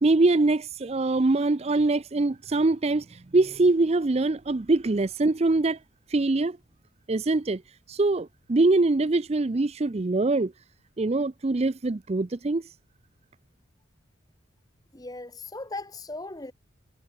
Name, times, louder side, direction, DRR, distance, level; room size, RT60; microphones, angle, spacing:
voice 1, 0.0-5.8 6.1-6.6 7.1-7.6 7.9-10.5 11.0-12.6, right 2 dB, 30° right, 0.5 m, -23 dB
voice 2, 14.9-16.5, left 2 dB, 20° left, 1.3 m, -38 dB
head